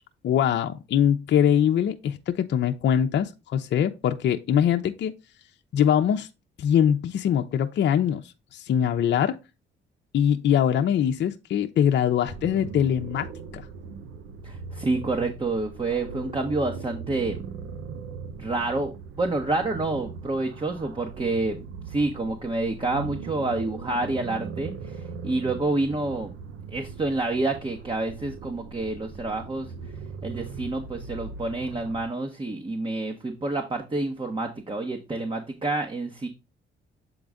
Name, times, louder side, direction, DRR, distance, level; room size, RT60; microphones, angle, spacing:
voice 1, 0.2-5.1 5.7-6.3 6.6-9.4 10.1-13.3 13.5-13.7, left 9 dB, 60° left, 0.7 m, -23 dB
sound 1, 12.3-32.0, right 5 dB, 75° right, 0.8 m, -39 dB
voice 2, 14.4-17.4 18.4-21.6 21.9-26.3 26.7-29.7 30.2-36.3, right 2 dB, 25° right, 1.2 m, -28 dB
7.8 x 3.9 x 3.5 m
cardioid pair, 90°, 20 cm